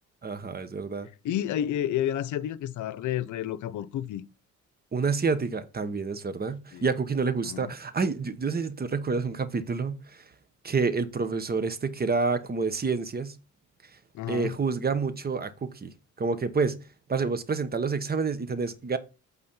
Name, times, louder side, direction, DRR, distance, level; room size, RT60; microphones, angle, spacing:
voice 1, 0.2-1.1 4.9-10.2 10.6-13.4 14.3-15.9 16.2-16.8 17.1-19.0, right 4 dB, 30° right, 1.2 m, -28 dB
voice 2, 1.2-4.2 6.7-6.9 7.4-7.7 14.1-14.5, left 11 dB, 75° left, 0.7 m, -30 dB
8.6 x 4.1 x 5.5 m
cardioid pair, 90°, 30 cm